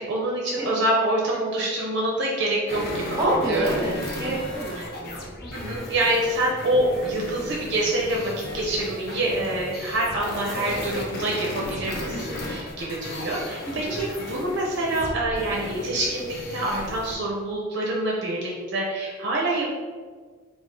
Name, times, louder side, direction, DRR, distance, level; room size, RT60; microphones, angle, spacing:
voice 1, 0.0-3.6 5.5-19.7, right 1 dB, 55° right, -3 dB, 0.6 m, -26 dB
sound 1, 2.7-17.1, left 1 dB, 50° left, 0.7 m, -35 dB
voice 2, 3.2-5.8 13.6-14.0, right 1 dB, 15° right, -4 dB, 1.1 m, -28 dB
3.5 x 2.4 x 3.8 m, 1.5 s
head